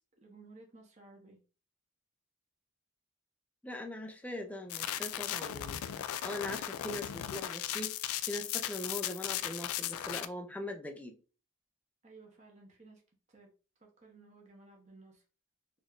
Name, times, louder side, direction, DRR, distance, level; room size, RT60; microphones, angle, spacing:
voice 1, 0.0-1.4 12.0-13.0 13.3-13.5 13.8-15.2, right 3 dB, 30° right, 1.1 m, -56 dB
voice 2, 3.6-5.8 6.2-8.0 8.3-11.1, left 1 dB, 5° left, 0.4 m, -41 dB
sound 1, 4.7-10.2, left 11 dB, 75° left, 0.3 m, -37 dB
4.1 x 3.1 x 2.4 m
head